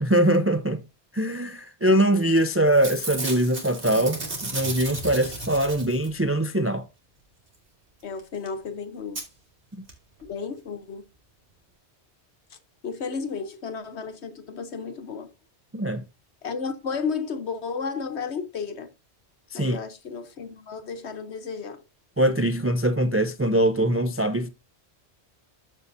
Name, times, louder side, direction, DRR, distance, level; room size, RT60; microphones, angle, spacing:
voice 1, 0.0-0.8 1.1-6.8 15.7-16.0 19.5-19.8 22.2-24.5, right 1 dB, 15° right, 0.5 m, -22 dB
Packing tape duct tape / Tearing, 2.2-2.4 2.7-6.3 8.2-8.3 8.5-8.6 9.2-9.3 9.9-10.0 10.2-10.3, right 2 dB, 85° right, 3.0 m, -34 dB
voice 2, 8.0-9.2 10.2-11.0 12.8-15.3 16.4-18.9 19.5-21.8, left 5 dB, 75° left, 1.3 m, -33 dB
13.5 x 5.5 x 2.7 m
omnidirectional pair, 1.1 m